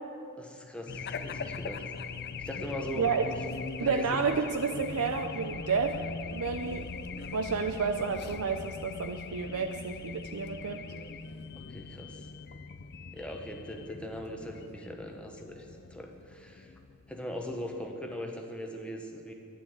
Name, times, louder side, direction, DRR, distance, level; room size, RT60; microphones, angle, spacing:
voice 1, 0.4-1.9 2.4-3.3 3.8-4.2 11.6-12.3 13.1-16.7 17.1-19.3, equal, 5° left, 2 dB, 1.1 m, -40 dB
Race car auto racing / Alarm, 0.9-17.8, left 4 dB, 50° left, 0.5 m, -41 dB
voice 2, 3.8-6.0 6.3-6.9 7.3-10.8, right 5 dB, 90° right, 7 dB, 0.6 m, -30 dB
9.9 x 9.7 x 7.9 m, 2.5 s
head